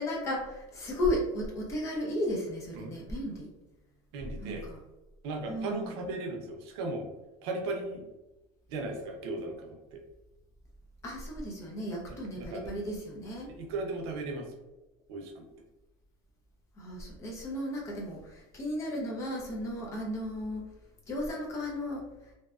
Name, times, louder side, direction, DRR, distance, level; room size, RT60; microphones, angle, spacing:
voice 1, 0.0-3.5 4.4-4.8 5.5-6.0 11.0-13.6 16.8-20.7 21.1-22.3, left 1 dB, 25° left, -2 dB, 0.5 m, -34 dB
voice 2, 4.1-4.7 5.2-7.1 7.4-8.1 8.7-10.0 12.1-12.8 13.5-14.5 15.1-15.4, right 2 dB, 85° right, 3 dB, 0.5 m, -37 dB
2.7 x 2.1 x 2.3 m, 1.0 s
cardioid pair, 180°, 13 cm